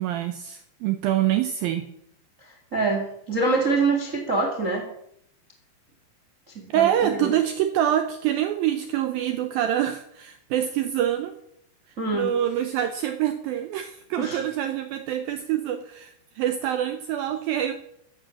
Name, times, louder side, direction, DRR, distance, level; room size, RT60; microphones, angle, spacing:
voice 1, 0.0-1.9 6.7-11.4 12.1-17.7, right 11 dB, 85° right, 8 dB, 2.0 m, -25 dB
voice 2, 2.4-4.9 6.5-7.3 12.0-12.3 14.2-14.4, right 3 dB, 55° right, 3 dB, 0.8 m, -25 dB
14.0 x 9.0 x 6.4 m, 0.72 s
omnidirectional pair, 5.2 m